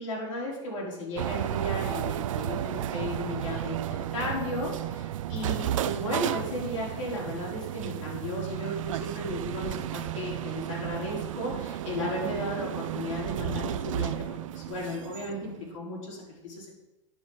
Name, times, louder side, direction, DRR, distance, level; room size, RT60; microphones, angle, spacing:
voice 1, 0.0-16.8, left 1 dB, 80° left, -4 dB, 4.8 m, -35 dB
sound 1, 1.2-15.7, right 12 dB, 85° right, 0.5 m, -33 dB
10.5 x 6.6 x 7.5 m, 0.97 s
supercardioid pair, 165°, 16 cm